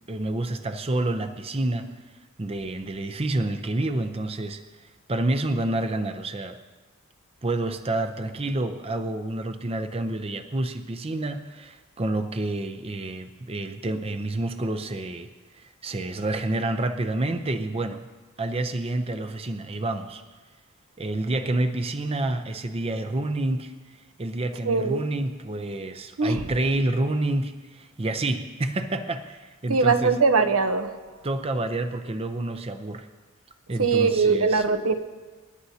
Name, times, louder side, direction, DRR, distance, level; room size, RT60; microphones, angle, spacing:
voice 1, 0.1-2.0 2.4-6.6 7.4-18.1 18.4-20.2 21.0-30.1 31.2-33.1 33.7-34.6, right 2 dB, 30° right, 8 dB, 0.6 m, -28 dB
voice 2, 24.6-25.0 26.2-26.4 29.7-30.9 33.8-34.9, right 4 dB, 80° right, 7 dB, 0.9 m, -21 dB
27.5 x 11.5 x 2.8 m, 1.3 s
head